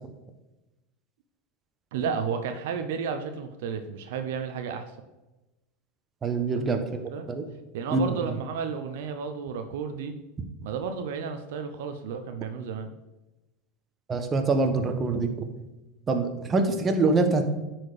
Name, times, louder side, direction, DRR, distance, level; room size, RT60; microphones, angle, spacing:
voice 1, 1.9-4.9 6.7-6.8 7.1-7.3 7.7-10.2 10.6-12.9 16.9-17.0, right 6 dB, 75° right, 7 dB, 0.7 m, -32 dB
voice 2, 6.2-6.8 7.3-7.4 7.9-8.4 14.1-15.5 16.1-17.4, right 3 dB, 25° right, 7 dB, 1.1 m, -25 dB
9.5 x 4.5 x 4.9 m, 1.0 s
supercardioid pair, 115°, 0 cm